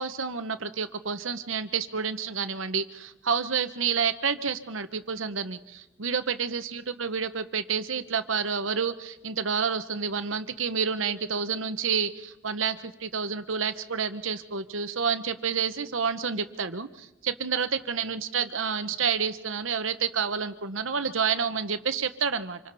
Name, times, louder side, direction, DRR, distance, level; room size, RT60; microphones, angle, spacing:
voice 1, 0.0-22.6, right 6 dB, 90° right, 10 dB, 1.2 m, -29 dB
26.5 x 25.0 x 4.2 m, 0.91 s
head